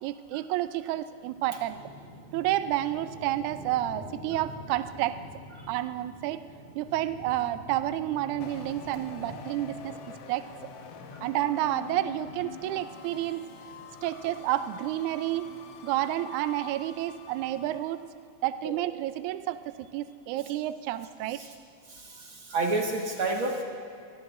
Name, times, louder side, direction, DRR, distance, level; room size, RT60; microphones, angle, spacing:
voice 1, 0.0-1.8 2.3-5.2 5.7-6.5 6.8-10.0 10.3-10.5 11.2-13.5 14.0-15.6 15.8-18.1 18.4-21.4, right 14 dB, 80° right, 11 dB, 1.9 m, -30 dB
sound 1, 1.2-17.7, left 1 dB, 20° left, 2.9 m, -48 dB
sound 2, 8.4-18.0, left 7 dB, 70° left, 2.1 m, -46 dB
voice 2, 21.9-23.6, right 2 dB, 50° right, 0 dB, 1.9 m, -30 dB
25.0 x 20.5 x 2.6 m, 2.5 s
omnidirectional pair, 3.7 m